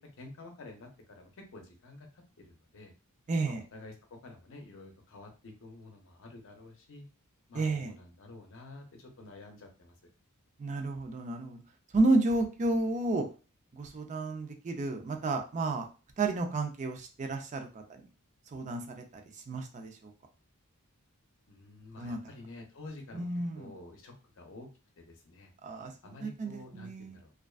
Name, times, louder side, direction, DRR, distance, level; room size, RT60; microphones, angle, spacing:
voice 1, 0.0-2.9 3.4-7.1 7.5-10.0 21.5-23.3 23.6-24.7 25.0-25.7 26.0-27.3, left 2 dB, 60° left, 3 dB, 0.6 m, -50 dB
voice 2, 3.3-3.6 7.5-7.9 10.6-11.6 11.9-13.3 13.7-15.9 16.2-18.1 18.5-20.1 22.0-22.2 23.1-23.7 25.6-27.2, right 2 dB, 35° right, 4 dB, 0.4 m, -31 dB
2.4 x 2.2 x 2.3 m, 0.34 s
head